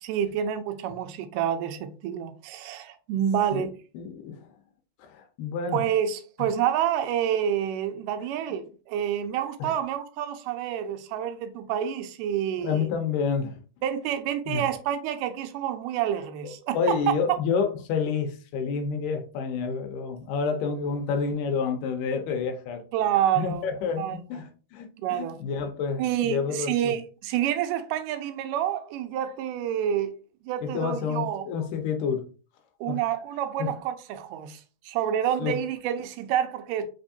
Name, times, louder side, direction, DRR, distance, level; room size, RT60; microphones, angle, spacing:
voice 1, 0.0-3.7 5.7-12.9 13.8-17.0 22.9-23.6 24.0-24.2 25.0-25.4 26.0-30.1 30.5-31.5 32.8-36.9, right 10 dB, 85° right, 2.2 m, -28 dB
voice 2, 3.9-4.5 5.0-5.8 9.6-9.7 12.6-13.6 14.5-14.7 16.4-22.8 23.4-26.9 30.6-32.3 32.9-33.0 33.6-33.7 35.4-35.6, left 5 dB, 85° left, 2.3 m, -29 dB
5.2 x 3.4 x 2.6 m
omnidirectional pair, 3.7 m